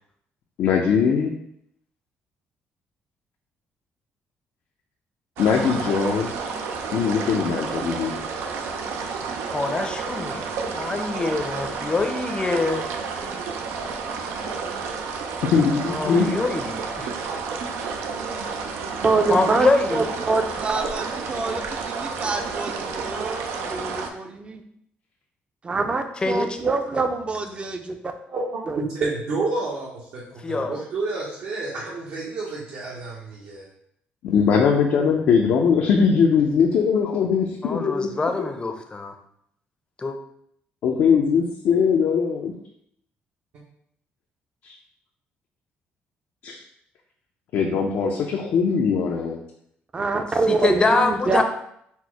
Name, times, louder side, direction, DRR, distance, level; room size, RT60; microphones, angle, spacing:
voice 1, 0.6-1.3 5.4-6.3 6.9-8.1 15.5-16.4 34.2-38.1 38.4-38.5 40.8-42.5 44.6-44.8 46.4-46.6 47.5-49.4, left 6 dB, 70° left, 0 dB, 0.5 m, -21 dB
sound 1, 5.4-24.1, right 5 dB, 90° right, 0.5 m, -30 dB
voice 2, 9.5-12.8 15.9-17.1 19.3-20.1 26.2-26.5 30.4-30.8 37.6-39.1 40.0-40.2 50.5-51.4, left 3 dB, 25° left, 6 dB, 0.5 m, -24 dB
voice 3, 19.0-24.6 25.6-28.1 28.7-28.8 49.9-51.4, right 3 dB, 25° right, 6 dB, 0.5 m, -25 dB
voice 4, 28.3-33.7, right 3 dB, 70° right, -5 dB, 0.9 m, -30 dB
4.3 x 2.1 x 4.5 m, 0.72 s
cardioid pair, 105°, 4 cm